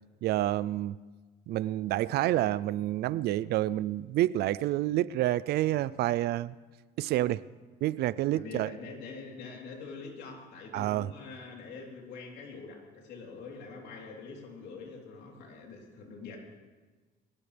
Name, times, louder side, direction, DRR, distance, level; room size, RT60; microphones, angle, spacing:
voice 1, 0.2-0.9 1.5-6.5 7.0-7.4 7.8-8.7 10.7-11.1, right 14 dB, 70° right, 19 dB, 0.5 m, -28 dB
voice 2, 2.2-2.5 5.7-5.9 8.3-16.4, left 4 dB, 80° left, 0 dB, 3.7 m, -45 dB
22.5 x 18.5 x 3.4 m, 1.3 s
cardioid pair, 110°, 17 cm